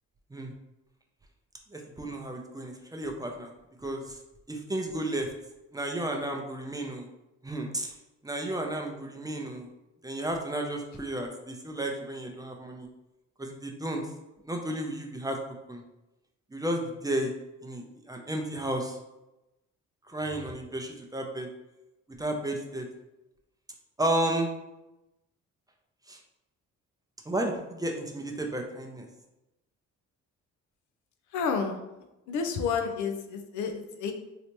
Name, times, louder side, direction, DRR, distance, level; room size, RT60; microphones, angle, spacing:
voice 1, 1.7-3.5 3.8-4.2 4.5-5.3 5.7-7.1 7.4-7.9 8.2-9.7 10.0-12.9 13.4-14.0 14.4-15.4 15.7-15.8 16.5-17.3 17.6-19.0 20.1-21.5 22.2-22.9 24.0-24.5 26.1-26.2 27.3-29.1, right 1 dB, 10° right, 2 dB, 0.5 m, -32 dB
voice 2, 31.3-31.8 32.3-34.1, left 5 dB, 80° left, 5 dB, 0.6 m, -30 dB
3.2 x 2.8 x 2.9 m, 0.94 s
cardioid pair, 90°, 30 cm